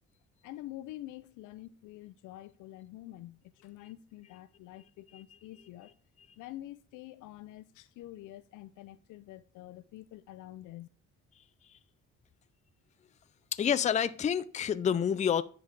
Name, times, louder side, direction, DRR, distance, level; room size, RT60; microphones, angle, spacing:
voice 1, 0.4-5.9 6.4-10.9, left 15 dB, 85° left, 0.5 m, -47 dB
voice 2, 13.5-15.4, left 8 dB, 25° left, 0.4 m, -28 dB
10.0 x 3.6 x 3.2 m
cardioid pair, 90°, 30 cm